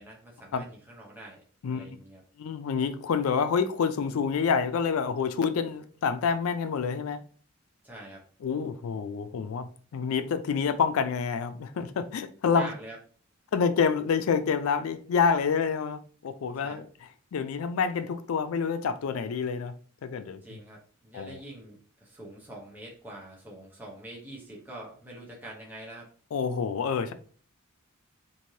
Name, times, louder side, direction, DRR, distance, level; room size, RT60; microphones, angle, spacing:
voice 1, 0.0-1.4 1.7-2.2 7.8-8.2 12.5-13.0 16.6-16.8 20.4-26.1, right 1 dB, 10° right, 0.7 m, -45 dB
voice 2, 2.4-7.2 8.4-12.7 13.5-16.8 17.3-19.7 20.0-20.6 21.1-21.4 26.3-27.1, left 6 dB, 85° left, 0.4 m, -28 dB
3.1 x 2.5 x 2.7 m
head